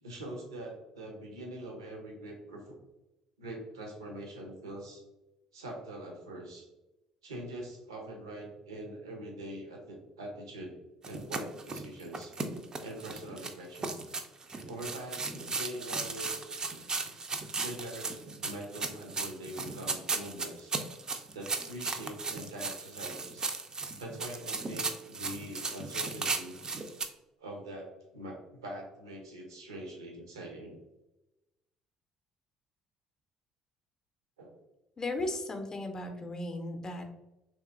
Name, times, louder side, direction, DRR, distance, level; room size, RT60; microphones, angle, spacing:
voice 1, 0.0-2.8 3.4-5.0 5.5-6.7 7.2-10.7 11.0-12.3 12.8-14.0 14.6-16.4 17.6-20.7 21.3-23.5 24.0-26.6 27.4-28.4 28.6-30.8 34.4-34.6, right 1 dB, 80° right, 0 dB, 0.6 m, -43 dB
sound 1, 11.0-27.1, right 4 dB, 30° right, 0.4 m, -36 dB
voice 2, 35.0-37.1, left 2 dB, 30° left, 5 dB, 0.5 m, -36 dB
3.1 x 2.8 x 2.4 m, 0.97 s
figure-of-eight pair, 50°, 2 cm